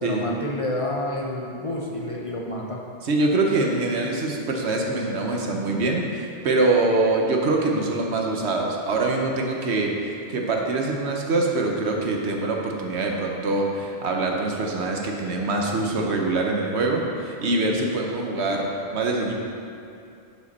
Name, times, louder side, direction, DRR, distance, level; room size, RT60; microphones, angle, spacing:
voice 1, 0.0-2.8, left 1 dB, 35° left, -2 dB, 0.7 m, -29 dB
voice 2, 3.0-19.3, right 2 dB, 75° right, 1 dB, 1.2 m, -24 dB
10.5 x 5.2 x 4.2 m, 2.6 s
omnidirectional pair, 1.1 m